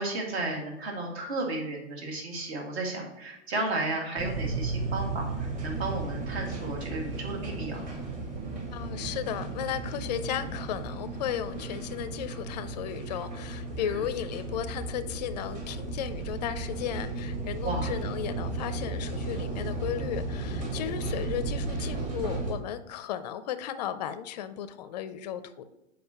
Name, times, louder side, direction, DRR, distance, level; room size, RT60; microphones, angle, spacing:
voice 1, 0.0-7.8 13.8-14.0 17.6-17.9, right 2 dB, 55° right, 1 dB, 2.1 m, -33 dB
sound 1, 4.2-22.5, right 3 dB, 20° right, 1.5 m, -34 dB
voice 2, 8.7-25.6, left 10 dB, 35° left, 12 dB, 0.5 m, -35 dB
7.6 x 5.1 x 2.9 m, 0.94 s
hypercardioid pair, 135°, 37 cm